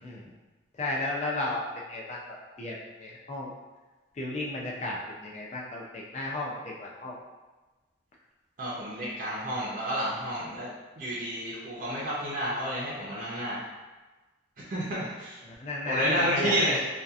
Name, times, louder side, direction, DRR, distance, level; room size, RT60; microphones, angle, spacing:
voice 1, 0.8-2.2 2.6-3.5 4.2-7.2 15.4-16.8, left 2 dB, 35° left, -3 dB, 0.4 m, -33 dB
voice 2, 8.6-10.7 11.0-13.6 14.7-15.4 15.9-16.8, equal, 45° right, -7 dB, 0.5 m, -30 dB
2.7 x 2.3 x 2.3 m, 1.2 s
head